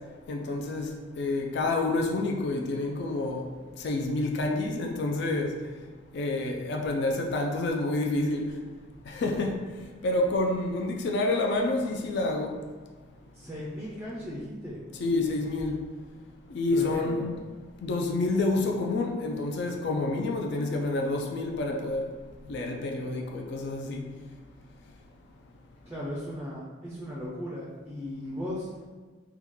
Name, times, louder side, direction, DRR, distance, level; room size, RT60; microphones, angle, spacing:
voice 1, 0.3-0.9 1.2-3.5 3.8-5.5 6.1-8.5 9.1-9.6 10.0-12.5 15.0-15.8 16.5-17.4 17.8-22.1 22.5-24.0, left 2 dB, 55° left, 2 dB, 0.4 m, -28 dB
voice 2, 13.3-14.8 16.7-17.3 25.9-28.7, left 1 dB, 10° right, -5 dB, 0.4 m, -37 dB
3.5 x 2.3 x 3.1 m, 1.4 s
head